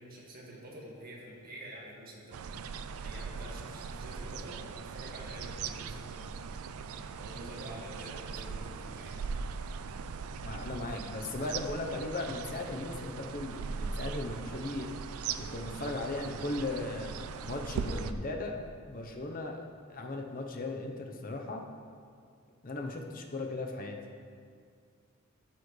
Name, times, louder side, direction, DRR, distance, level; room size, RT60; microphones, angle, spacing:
voice 1, 0.0-2.4 3.0-6.2 7.2-9.2, right 1 dB, 45° right, -4 dB, 1.8 m, -47 dB
sound 1, 2.3-18.1, right 5 dB, 80° right, 0.4 m, -40 dB
voice 2, 10.4-14.9 15.4-17.1 17.4-18.6 18.9-21.6 22.6-24.0, left 2 dB, 40° left, 2 dB, 0.8 m, -37 dB
13.0 x 6.9 x 3.2 m, 2.2 s
head